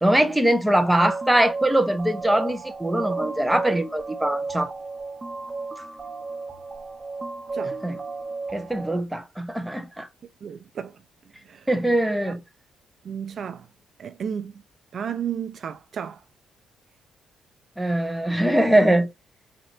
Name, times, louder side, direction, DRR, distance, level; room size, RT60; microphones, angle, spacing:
voice 1, 0.0-4.7 7.8-8.0 8.5-10.1 11.7-12.4 17.8-19.1, right 1 dB, 5° right, 0.7 m, -22 dB
sound 1, 1.0-9.0, right 3 dB, 25° right, 1.0 m, -33 dB
voice 2, 10.4-11.0 11.4-11.7 12.3-12.4 13.0-13.7 14.0-14.5 14.9-16.2 17.8-18.2, right 8 dB, 55° right, 0.5 m, -33 dB
4.3 x 2.6 x 2.6 m
cardioid pair, 90°, 0 cm